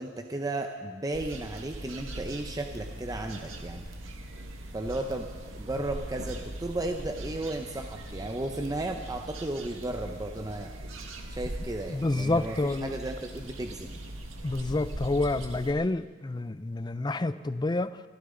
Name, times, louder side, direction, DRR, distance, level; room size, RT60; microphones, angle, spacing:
voice 1, 0.0-3.9 4.7-10.8 11.3-14.0, right 2 dB, 20° right, 4 dB, 0.7 m, -34 dB
sound 1, 1.1-15.7, right 1 dB, 85° right, 1.8 m, -41 dB
voice 2, 11.9-12.9 14.4-18.0, left 2 dB, 20° left, 13 dB, 0.5 m, -28 dB
24.5 x 14.5 x 3.9 m, 1.4 s
head